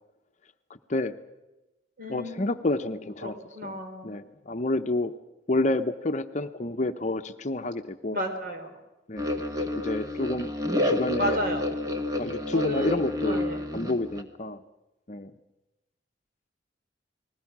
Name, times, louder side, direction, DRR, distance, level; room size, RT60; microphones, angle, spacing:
voice 1, 0.7-1.2 2.1-3.4 3.6-3.8 4.0-5.1 5.5-8.2 9.1-9.3 9.8-10.5 10.8-11.4 12.2-13.4 13.7-14.6 15.1-15.3, left 2 dB, 40° left, 8 dB, 0.8 m, -29 dB
voice 2, 2.0-2.4 3.2-4.1 8.1-8.7 11.2-11.6 12.5-12.9 13.2-13.6, equal, 50° right, 4 dB, 4.1 m, -32 dB
sound 1, 9.2-14.2, left 1 dB, 20° right, 1.9 m, -29 dB
29.5 x 20.0 x 6.1 m, 1.0 s
head